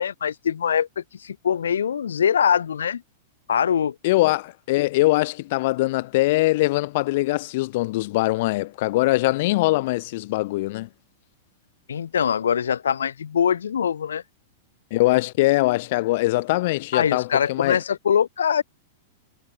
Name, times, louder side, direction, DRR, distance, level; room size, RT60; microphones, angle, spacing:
voice 1, 0.0-3.0 3.5-3.9 11.9-14.2 16.9-18.6, left 8 dB, 70° left, 5.6 m, -23 dB
voice 2, 4.0-10.9 14.9-17.8, left 19 dB, 55° left, 7.4 m, -22 dB
figure-of-eight pair, 100°, 0 cm